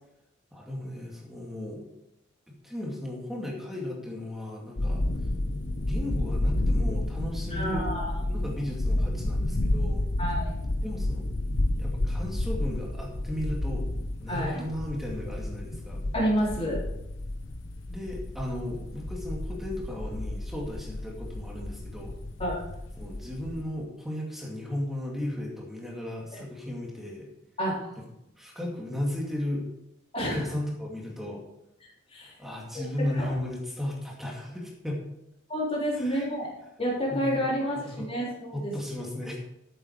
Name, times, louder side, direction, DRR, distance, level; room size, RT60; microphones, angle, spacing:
voice 1, 0.5-1.9 2.5-5.0 5.8-7.9 8.3-10.0 10.8-11.3 11.8-13.9 14.2-16.0 17.9-22.2 23.0-27.3 28.4-29.6 30.2-31.4 32.2-35.0 35.9-36.3 37.1-38.1 38.5-39.4, left 1 dB, ahead, -3 dB, 2.3 m, -35 dB
sound 1, 4.8-23.6, left 1 dB, 65° left, 1.0 m, -31 dB
voice 2, 7.5-8.2 10.2-10.6 14.3-14.6 16.1-16.8 22.4-22.6 26.3-26.4 27.6-27.9 30.1-30.5 32.1-32.3 33.0-33.4 35.5-36.5 36.8-38.7, equal, 30° left, -4 dB, 3.8 m, -29 dB
13.0 x 7.9 x 4.7 m, 0.86 s
head